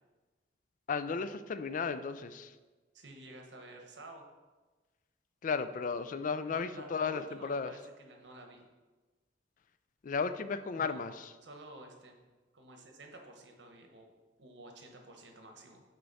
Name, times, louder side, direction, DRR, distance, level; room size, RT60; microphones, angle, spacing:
voice 1, 0.9-2.5 5.4-7.7 10.0-11.1, left 5 dB, 45° left, 12 dB, 0.4 m, -34 dB
voice 2, 2.9-4.3 6.4-8.7 10.7-11.0 11.4-14.1 14.4-15.8, right 2 dB, 80° right, 3 dB, 1.1 m, -51 dB
7.9 x 4.5 x 4.1 m, 1.2 s
head